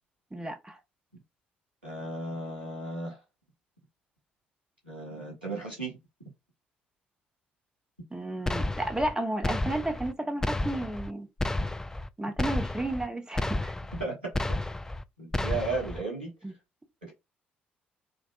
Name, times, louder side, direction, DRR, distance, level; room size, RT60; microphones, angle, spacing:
voice 1, 0.3-0.7 8.1-11.3 12.2-13.7 16.4-16.5, right 1 dB, 15° right, 1.2 m, -32 dB
voice 2, 1.8-3.2 4.8-6.0 14.0-14.3 15.2-16.3 17.0-17.1, right 3 dB, 85° right, 1.3 m, -34 dB
sound 1, 8.5-9.1 9.4-10.1 10.4-11.1 11.4-12.1 12.4-13.1 13.4-14.1 14.3-15.0 15.3-16.0, left 2 dB, 10° left, 0.3 m, -31 dB
4.7 x 2.5 x 2.5 m
figure-of-eight pair, 45°, 5 cm